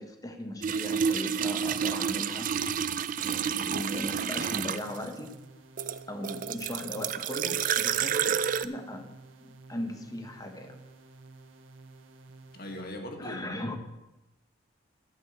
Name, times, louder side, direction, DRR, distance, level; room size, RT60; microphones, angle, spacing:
voice 1, 0.0-2.6 3.2-5.4 6.1-9.1 9.4-10.8 13.2-13.8, left 1 dB, 20° left, 6 dB, 1.1 m, -38 dB
sound 1, 0.6-5.1 5.8-8.7, right 7 dB, 45° right, 0.4 m, -29 dB
sound 2, 4.8-12.8, right 2 dB, 85° right, 1.2 m, -52 dB
voice 2, 12.5-13.8, left 1 dB, 50° left, 3 dB, 1.8 m, -40 dB
11.5 x 5.5 x 8.0 m, 0.97 s
head